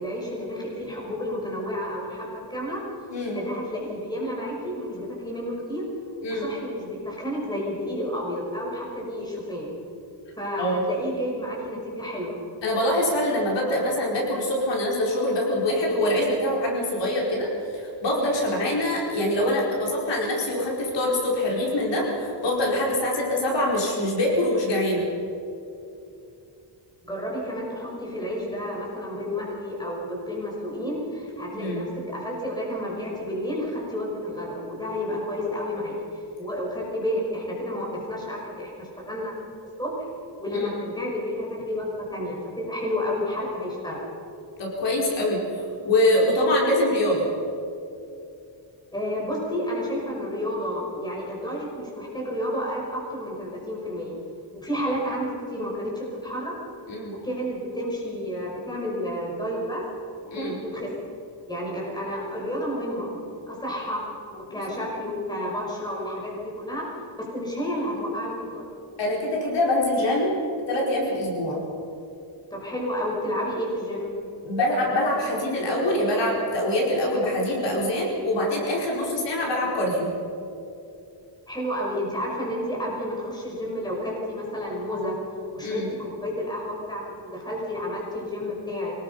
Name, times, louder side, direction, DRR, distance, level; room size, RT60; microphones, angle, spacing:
voice 1, 0.0-2.8 3.3-5.8 6.3-9.7 10.4-12.4 27.0-39.3 39.8-39.9 40.4-44.1 48.9-54.2 54.6-56.5 57.1-59.8 60.3-60.9 61.5-63.2 63.5-64.0 64.3-66.8 67.2-68.7 72.5-74.1 81.5-85.2 85.5-88.9, equal, 10° left, -4 dB, 5.6 m, -31 dB
voice 2, 12.6-25.1 31.5-31.9 40.5-40.7 44.6-47.3 56.9-57.1 60.3-60.6 64.5-64.6 69.0-70.4 70.7-71.6 74.4-80.1 85.6-85.9, left 1 dB, 75° left, -3 dB, 4.9 m, -24 dB
24.5 x 19.0 x 5.6 m, 2.7 s
wide cardioid pair, 165°, 43 cm